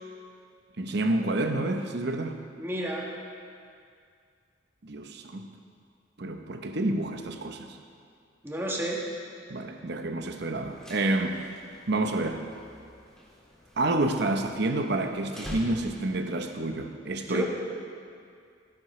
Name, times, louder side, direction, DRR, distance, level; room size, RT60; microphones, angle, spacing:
voice 1, 0.8-2.4 4.8-5.5 6.2-7.8 9.5-11.4 11.9-12.4 13.8-17.4, right 2 dB, 60° right, 5 dB, 0.9 m, -29 dB
voice 2, 2.6-3.1 8.4-9.0 17.3-17.4, right 1 dB, 10° right, -3 dB, 1.6 m, -30 dB
sound 1, 10.5-16.3, left 1 dB, 5° left, 2.2 m, -46 dB
17.5 x 10.5 x 3.2 m, 2.3 s
head